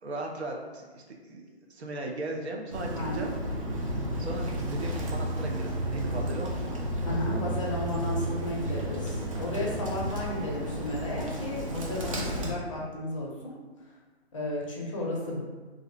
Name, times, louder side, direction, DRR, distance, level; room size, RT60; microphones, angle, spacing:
voice 1, 0.0-1.4 1.7-3.5 3.7-6.7 7.1-7.5, right 2 dB, 75° right, 1 dB, 0.7 m, -38 dB
Bird, 2.7-12.5, right 1 dB, 35° right, 0.4 m, -32 dB
voice 2, 7.0-13.5 14.3-15.4, left 1 dB, 30° left, -3 dB, 0.5 m, -33 dB
2.5 x 2.4 x 3.2 m, 1.3 s
figure-of-eight pair, 135°, 33 cm